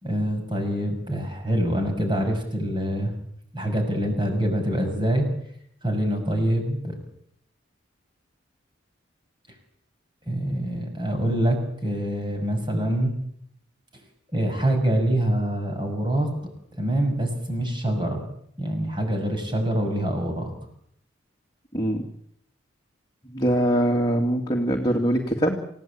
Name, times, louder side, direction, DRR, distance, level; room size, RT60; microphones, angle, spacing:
voice 1, 0.0-3.1 3.5-5.3 5.8-7.0 10.3-13.1 14.3-16.3 16.8-18.2 18.6-20.5, right 1 dB, 25° right, 4 dB, 6.5 m, -25 dB
voice 2, 21.7-22.0 23.2-25.6, right 1 dB, 20° left, 0 dB, 2.4 m, -23 dB
28.5 x 17.0 x 8.8 m, 0.71 s
head